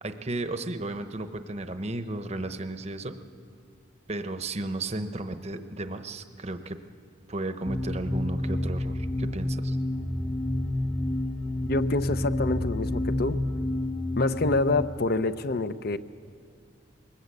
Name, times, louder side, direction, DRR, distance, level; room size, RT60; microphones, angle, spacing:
voice 1, 0.0-3.2 4.1-6.8 7.3-9.8, right 2 dB, 35° right, 9 dB, 0.9 m, -34 dB
sound 1, 7.7-14.9, left 1 dB, 10° left, 0.7 m, -29 dB
voice 2, 11.7-13.4 14.2-16.0, left 2 dB, 50° left, 12 dB, 0.7 m, -27 dB
22.0 x 19.5 x 8.4 m, 2.4 s
head